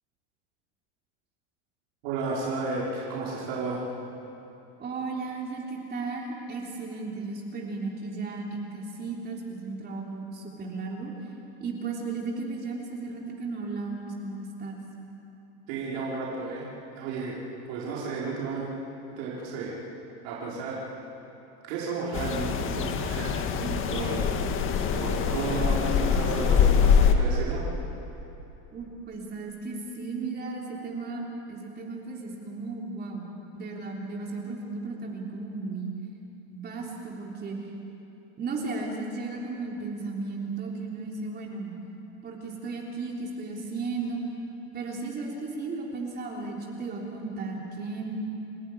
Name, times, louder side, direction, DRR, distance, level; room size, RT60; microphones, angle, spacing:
voice 1, 2.0-3.8 15.7-17.4 17.7-18.7 19.1-19.7 20.2-20.9 21.7-23.4 23.9-24.3 24.9-27.6, right 3 dB, 70° right, -6 dB, 5.5 m, -33 dB
voice 2, 4.8-11.1 11.6-14.8 23.5-23.9 28.7-35.9 36.5-37.6 38.4-41.8 42.2-44.2 44.7-48.1, right 3 dB, 30° right, -1 dB, 3.5 m, -35 dB
sound 1, 22.1-27.1, left 7 dB, 40° left, 1.9 m, -24 dB
29.5 x 12.0 x 9.9 m, 3.0 s
supercardioid pair, 120°, 33 cm